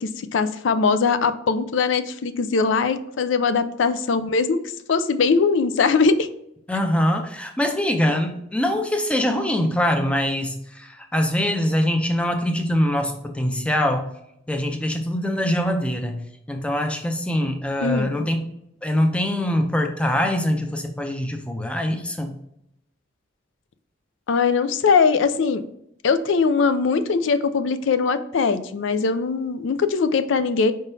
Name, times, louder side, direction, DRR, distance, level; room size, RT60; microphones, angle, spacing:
voice 1, 0.0-4.6 4.9-6.3 17.8-18.3 24.3-25.6 26.0-30.7, left 5 dB, 70° left, 11 dB, 0.4 m, -21 dB
voice 2, 6.7-14.1 14.5-16.2 16.5-18.5 18.8-22.3, left 1 dB, 5° left, 4 dB, 0.5 m, -23 dB
4.9 x 3.7 x 2.7 m, 0.79 s
head